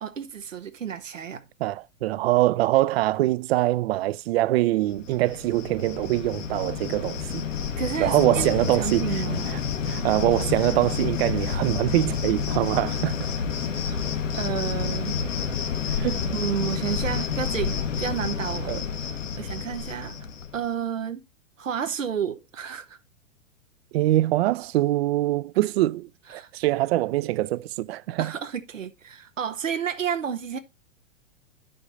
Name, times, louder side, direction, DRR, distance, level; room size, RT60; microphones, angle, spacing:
voice 1, 0.0-1.4 7.8-8.5 8.8-9.6 9.9-10.0 13.8-14.0 14.3-15.2 16.3-18.7 19.4-20.3 20.5-21.2 21.6-23.0 26.3-26.5 28.2-30.6, right 8 dB, 90° right, 0.8 m, -31 dB
voice 2, 1.6-7.4 8.0-9.0 9.5-9.6 9.9-13.3 15.9-16.2 18.7-18.8 23.9-28.3, right 16 dB, 55° right, 0.5 m, -24 dB
Cricket, 4.9-20.6, left 6 dB, 80° left, 1.3 m, -29 dB
9.8 x 5.2 x 3.9 m
hypercardioid pair, 110°, 38 cm